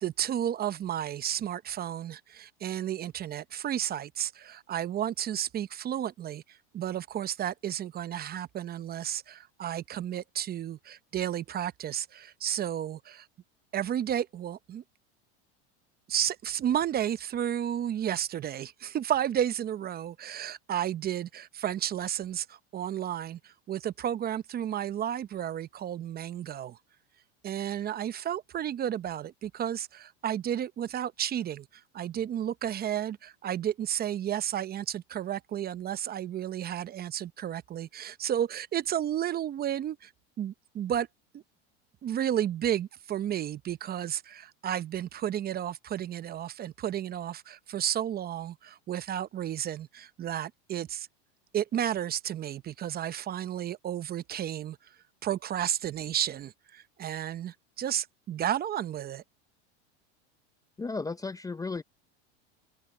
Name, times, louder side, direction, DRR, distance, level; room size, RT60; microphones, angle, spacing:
voice 1, 0.0-13.3 13.7-14.8 16.1-26.8 27.4-40.1 40.4-41.1 41.3-41.4 42.0-51.1 51.5-54.8 55.2-59.2, right 10 dB, 30° right, 0.8 m, -32 dB
voice 2, 60.8-61.8, left 3 dB, 10° left, 0.6 m, -34 dB
supercardioid pair, 115°, 33 cm